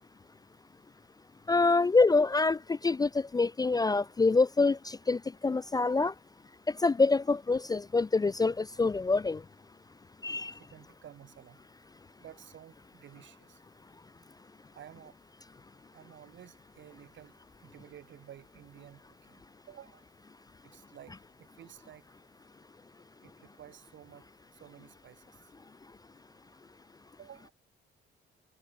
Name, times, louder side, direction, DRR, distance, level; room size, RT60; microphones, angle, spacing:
voice 1, 1.5-6.1 6.8-9.4 10.2-10.5, left 3 dB, 20° left, 0.4 m, -26 dB
voice 2, 10.6-11.6 12.2-13.6 14.7-15.2 15.9-19.4 19.7-20.0 20.6-22.0 23.2-25.4 27.2-27.5, right 11 dB, 70° right, 4.1 m, -53 dB
cardioid pair, 90°, 20 cm